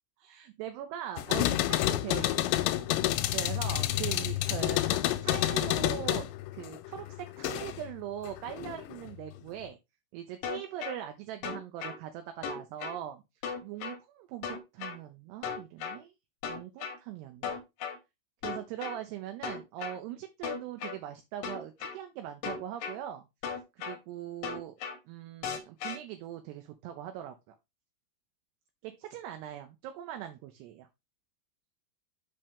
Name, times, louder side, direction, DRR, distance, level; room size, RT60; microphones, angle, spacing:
voice 1, 0.2-2.9 3.3-6.3 6.5-9.8 10.1-13.2 13.6-16.1 16.5-17.6 18.4-23.3 23.7-24.7 25.1-27.6 28.8-30.9, right 11 dB, 80° right, 7 dB, 2.6 m, -41 dB
sound 1, 1.2-7.9 8.2-9.1, left 15 dB, 90° left, 2.9 m, -29 dB
sound 2, 10.4-11.0 11.4-12.0 12.4-13.0 13.4-14.0 14.4-15.0 15.4-16.0 16.4-17.0 17.4-18.0 18.4-19.0 19.4-20.0 20.4-21.0 21.4-22.0 22.4-23.0 23.4-24.0 24.4-25.0 25.4-26.0, left 6 dB, 70° left, 1.7 m, -36 dB
6.6 x 5.4 x 3.5 m, 0.23 s
omnidirectional pair, 5.1 m